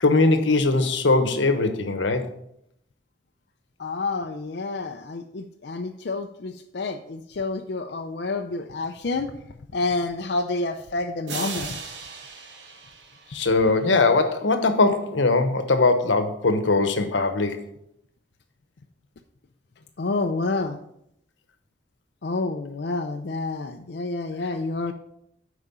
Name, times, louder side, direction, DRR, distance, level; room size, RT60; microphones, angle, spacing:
voice 1, 0.0-2.3 13.3-17.6, left 3 dB, 85° left, 8 dB, 1.0 m, -21 dB
voice 2, 3.8-9.3 9.7-11.8 20.0-20.8 22.2-24.9, left 3 dB, 60° left, 4 dB, 0.5 m, -29 dB
sound 1, 11.3-13.9, right 4 dB, 75° right, 1.1 m, -37 dB
8.3 x 4.9 x 5.5 m, 0.75 s
head